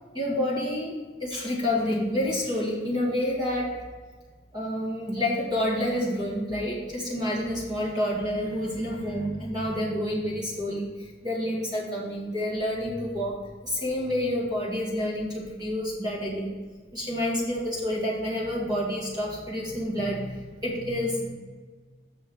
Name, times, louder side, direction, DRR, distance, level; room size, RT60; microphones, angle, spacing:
voice 1, 0.1-3.9 4.5-16.5 16.9-21.3, left 1 dB, 20° right, -4 dB, 1.8 m, -29 dB
7.0 x 6.1 x 4.7 m, 1.4 s
head